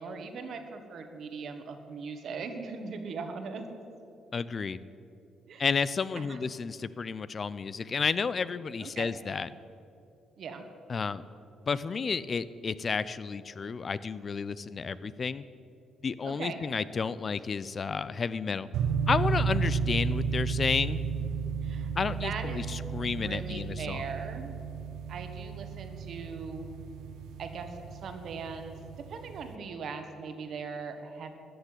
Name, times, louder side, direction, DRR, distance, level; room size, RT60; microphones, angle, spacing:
voice 1, 0.0-3.8 5.5-5.6 6.1-6.4 8.8-9.1 10.4-10.6 16.2-16.6 21.6-24.6 25.1-26.6 27.4-28.7 29.1-31.4, right 5 dB, 65° right, 6 dB, 1.5 m, -40 dB
voice 2, 4.3-4.8 5.6-9.5 10.9-11.2 11.7-15.4 16.0-18.7 19.1-21.0 22.0-24.0, left 5 dB, 40° left, 16 dB, 0.4 m, -31 dB
sound 1, 18.7-29.5, right 5 dB, 90° right, 0.9 m, -33 dB
13.5 x 6.7 x 9.7 m, 2.7 s
cardioid pair, 90°, 0 cm